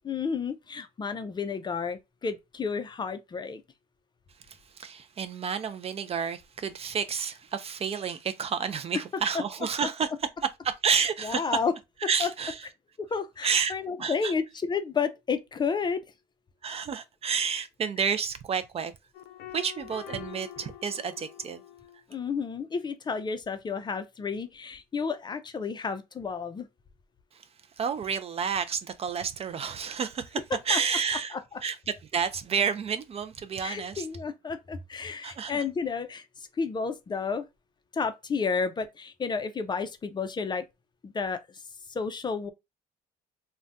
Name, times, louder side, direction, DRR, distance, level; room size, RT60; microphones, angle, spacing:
voice 1, 0.1-3.6 10.9-11.7 12.2-12.3 13.0-16.0 22.1-26.7 30.7-30.8 33.6-36.2 36.6-37.4 37.9-40.6 41.0-41.4 41.9-42.5, left 5 dB, 25° left, 0.5 m, -31 dB
voice 2, 4.5-10.3 10.8-11.6 12.0-12.7 13.4-13.7 14.0-14.3 16.6-18.9 19.5-21.6 27.3-27.4 27.8-34.1 35.2-35.6, right 6 dB, 35° right, 0.4 m, -30 dB
sound 1, 19.1-22.0, left 12 dB, 80° left, 0.5 m, -45 dB
2.6 x 2.2 x 3.4 m
cardioid pair, 110°, 17 cm